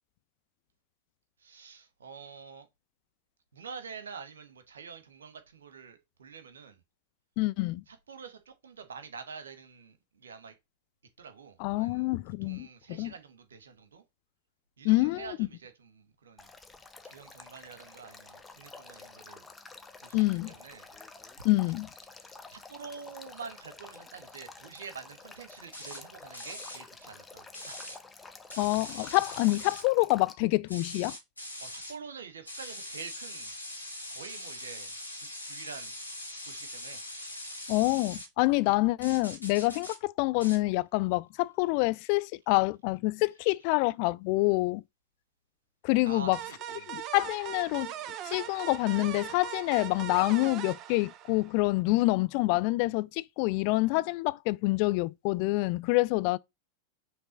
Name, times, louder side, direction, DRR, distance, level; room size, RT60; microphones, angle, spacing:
voice 1, 1.4-2.7 3.5-6.8 7.9-10.6 11.2-12.1 12.4-14.0 14.8-16.5 17.0-19.5 20.0-20.9 21.4-21.5 22.2-27.9 31.6-33.5 34.1-35.9 36.2-37.0 46.0-46.9, right 5 dB, 65° right, 1.2 m, -47 dB
voice 2, 7.4-7.8 11.6-13.1 14.8-15.3 20.1-20.5 21.4-21.9 28.6-31.2 37.7-44.8 45.8-46.4 46.9-47.9 48.3-56.4, left 22 dB, 45° left, 0.3 m, -27 dB
Male speech man speaking / Stream / Trickle dribble, 16.4-30.3, left 3 dB, 10° left, 0.9 m, -50 dB
sound 1, 25.7-26.0 26.3-26.8 27.5-28.0 28.5-29.8 30.7-32.0 32.5-38.3 39.0-40.0 40.4-40.6, left 1 dB, 85° left, 2.2 m, -42 dB
sound 2, 46.3-51.7, right 11 dB, 35° right, 0.6 m, -40 dB
6.0 x 3.3 x 5.2 m
figure-of-eight pair, 90°, 0 cm